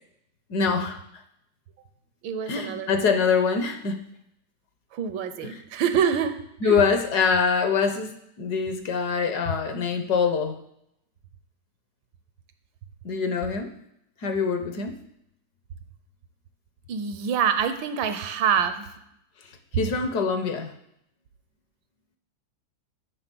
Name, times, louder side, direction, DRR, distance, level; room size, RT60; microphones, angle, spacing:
voice 1, 0.5-1.0 2.5-4.0 5.4-5.6 6.6-8.1 8.4-10.6 13.0-13.7 14.2-15.0 19.4-20.7, left 5 dB, 65° left, 7 dB, 1.3 m, -24 dB
voice 2, 2.2-3.1 4.9-6.4 6.6-6.8 16.9-18.9, right 7 dB, 80° right, 9 dB, 1.4 m, -26 dB
11.0 x 3.7 x 6.1 m, 0.76 s
omnidirectional pair, 2.1 m